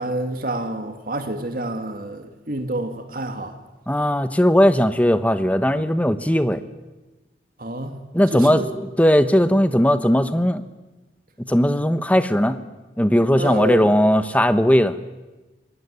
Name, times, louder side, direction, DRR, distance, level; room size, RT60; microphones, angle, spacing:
voice 1, 0.0-3.5 7.6-8.0 8.3-8.7 13.4-13.8, right 1 dB, 50° right, 5 dB, 2.2 m, -28 dB
voice 2, 3.9-6.6 8.1-10.6 11.5-12.6 13.0-15.0, equal, 10° left, 11 dB, 1.1 m, -18 dB
26.0 x 22.0 x 9.9 m, 1.1 s
head